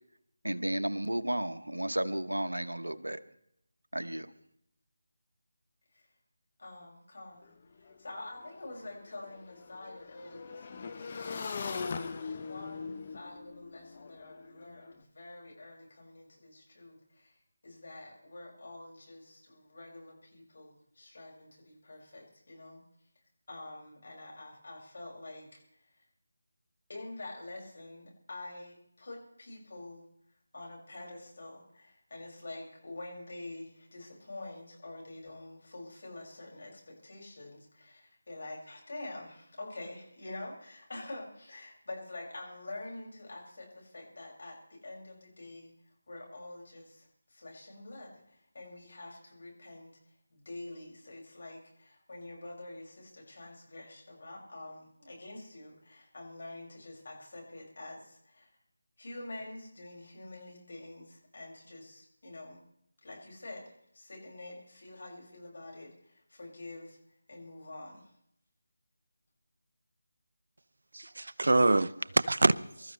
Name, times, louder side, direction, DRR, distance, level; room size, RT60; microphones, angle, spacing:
voice 1, 0.4-3.2 3.9-4.3, right 1 dB, 85° right, 11 dB, 1.0 m, -33 dB
voice 2, 6.6-11.7 12.3-22.8 23.5-25.9 26.9-30.0 30.5-45.7 46.1-58.5 59.0-62.6 63.0-67.0 67.3-68.1, left 2 dB, 55° left, -2 dB, 6.2 m, -47 dB
Motorcycle / Engine, 7.4-7.5 7.8-14.9, left 5 dB, 35° left, 1.0 m, -41 dB
voice 3, 70.9-72.9, right 2 dB, 65° right, 15 dB, 0.6 m, -26 dB
25.5 x 13.5 x 3.3 m, 0.73 s
figure-of-eight pair, 160°, 0 cm